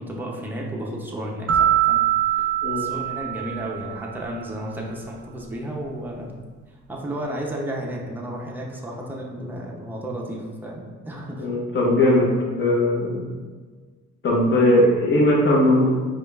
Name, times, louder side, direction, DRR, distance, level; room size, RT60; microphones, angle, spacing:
voice 1, 0.0-2.0 2.3-2.5 2.8-6.3 6.9-11.5, right 1 dB, 5° right, -2 dB, 0.6 m, -33 dB
sound 1, 1.5-4.2, right 12 dB, 50° right, 0.5 m, -23 dB
voice 2, 11.4-12.3 12.6-13.3 14.2-15.9, left 1 dB, 40° left, -3 dB, 1.0 m, -19 dB
4.9 x 2.4 x 2.4 m, 1.4 s
cardioid pair, 90°, 30 cm